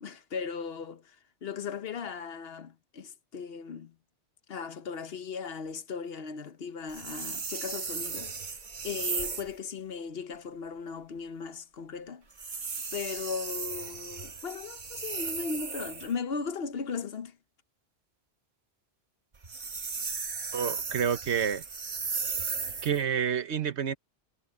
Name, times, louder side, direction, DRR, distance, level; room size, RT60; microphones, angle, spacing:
voice 1, 0.0-1.2 1.4-3.9 4.5-8.3 8.8-12.2 12.9-17.4, left 5 dB, 65° left, 1.1 m, -37 dB
Drawing with Pencil (Slow & Continuous), 6.9-9.6 12.3-16.1 19.3-23.0, right 5 dB, 45° right, 1.2 m, -36 dB
voice 2, 20.5-21.6 22.8-23.9, right 8 dB, 85° right, 1.3 m, -28 dB
omnidirectional pair, 1.1 m